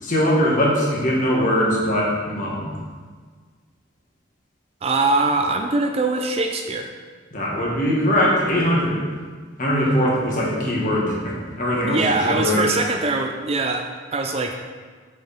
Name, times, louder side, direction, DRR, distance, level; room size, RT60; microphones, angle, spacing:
voice 1, 0.0-2.8 7.3-9.1 9.6-12.7, equal, 40° left, -4 dB, 1.7 m, -21 dB
voice 2, 4.8-6.9 11.9-14.6, right 3 dB, 30° right, 4 dB, 0.4 m, -22 dB
6.9 x 6.2 x 4.4 m, 1.5 s
head